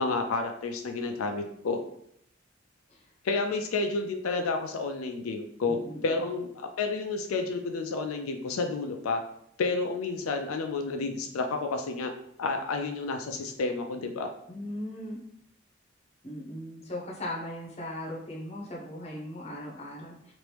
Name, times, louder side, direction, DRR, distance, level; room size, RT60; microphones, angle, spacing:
voice 1, 0.0-1.8 3.2-5.8 6.0-9.2 9.6-12.1 12.4-14.3, left 3 dB, 90° left, 5 dB, 0.4 m, -30 dB
voice 2, 5.7-6.1 14.5-15.2 16.2-20.3, left 1 dB, 30° left, -3 dB, 0.8 m, -38 dB
3.0 x 2.5 x 3.3 m, 0.72 s
head